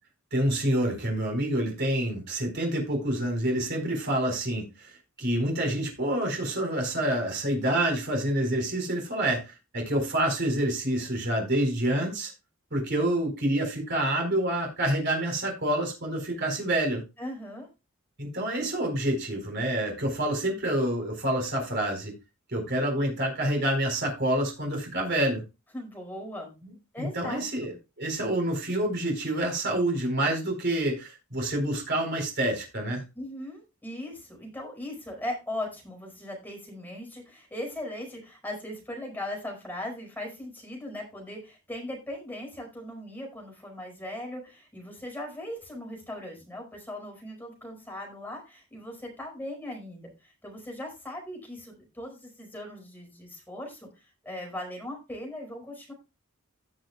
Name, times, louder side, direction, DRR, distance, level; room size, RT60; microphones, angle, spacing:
voice 1, 0.3-12.3 12.7-17.0 18.2-22.1 22.5-25.4 26.6-33.0, right 1 dB, 50° right, 2 dB, 4.3 m, -27 dB
voice 2, 17.2-17.7 25.7-26.5 26.9-27.7 33.1-53.9 54.2-55.9, left 1 dB, 10° left, 0 dB, 4.7 m, -39 dB
17.0 x 6.4 x 2.3 m, 0.27 s
head